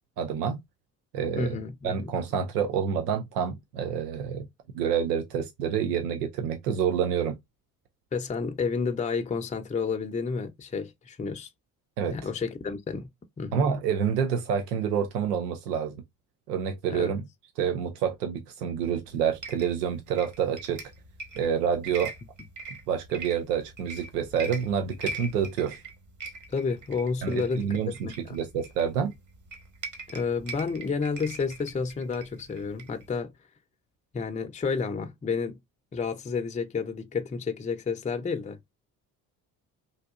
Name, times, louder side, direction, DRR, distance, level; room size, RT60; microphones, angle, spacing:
voice 1, 0.2-0.6 1.1-1.6 1.8-4.5 4.7-7.4 12.0-12.2 13.5-16.0 16.5-17.2 17.6-20.8 21.4-22.1 22.9-25.8 27.2-29.1, right 7 dB, 85° right, 0.6 m, -28 dB
voice 2, 1.4-2.1 8.1-11.5 12.1-13.1 13.4-13.7 16.9-17.1 26.5-28.4 30.1-33.3 34.1-35.6 35.9-38.7, left 5 dB, 15° left, 0.6 m, -30 dB
sound 1, 19.1-33.2, right 3 dB, 40° right, 1.2 m, -42 dB
3.8 x 2.6 x 2.4 m
hypercardioid pair, 50°, 45 cm